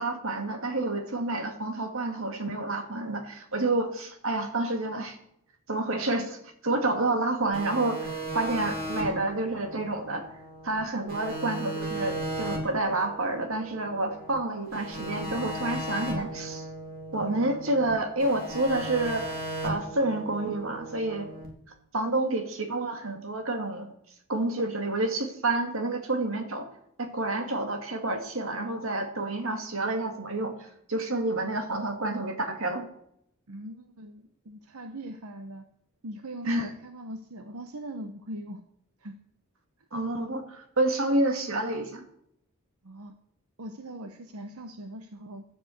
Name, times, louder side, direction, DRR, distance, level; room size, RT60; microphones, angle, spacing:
voice 1, 0.0-5.2 5.7-10.2 10.6-16.6 17.1-19.4 19.6-21.3 21.9-23.9 24.3-26.7 27.0-32.9 36.4-36.7 39.9-42.0, right 2 dB, 65° right, 5 dB, 2.2 m, -29 dB
sound 1, 7.5-10.8 11.1-14.3 14.7-17.9 18.2-21.5, right 1 dB, 45° right, 3.5 m, -36 dB
voice 2, 33.5-35.6 36.0-38.6 39.0-39.2 42.8-43.1 43.6-45.4, right 1 dB, 90° right, 7 dB, 1.0 m, -41 dB
12.0 x 8.2 x 7.9 m, 0.74 s
head